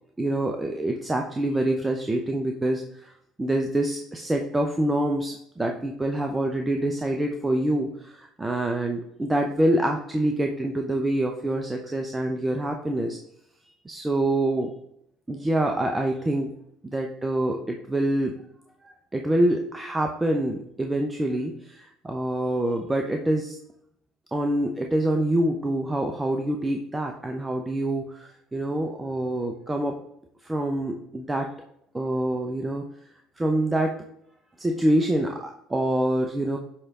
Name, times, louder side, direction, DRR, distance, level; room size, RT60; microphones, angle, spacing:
voice 1, 0.2-3.1 3.4-13.2 13.8-14.7 15.3-16.5 16.8-18.3 18.8-23.6 24.3-30.0 30.4-31.5 31.9-32.8 33.4-34.0 34.6-36.6, right 1 dB, 15° right, 3 dB, 0.8 m, -26 dB
8.6 x 3.4 x 3.8 m, 0.72 s
hypercardioid pair, 70°, 0 cm